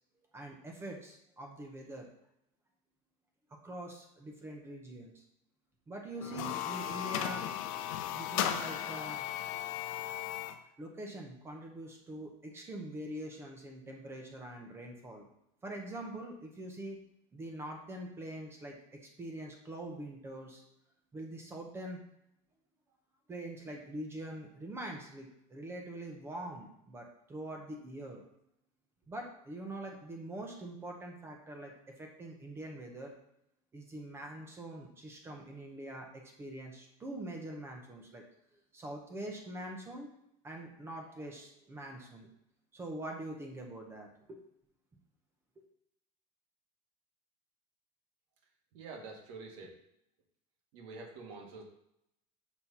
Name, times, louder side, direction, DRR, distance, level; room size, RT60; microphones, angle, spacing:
voice 1, 0.3-2.1 3.6-5.2 5.9-7.5 8.1-9.2 10.8-15.3 15.6-17.0 17.3-20.6 21.1-22.0 23.3-28.2 29.1-31.7 32.0-33.1 33.7-38.2 38.7-40.1 40.4-42.3 42.7-44.4, right 1 dB, 15° right, 1 dB, 0.9 m, -44 dB
sound 1, 6.2-10.6, left 10 dB, 80° left, 0.6 m, -36 dB
voice 2, 48.7-49.8 50.7-51.6, right 3 dB, 65° right, 0 dB, 1.8 m, -47 dB
6.2 x 4.2 x 5.6 m, 0.78 s
cardioid pair, 175°, 17 cm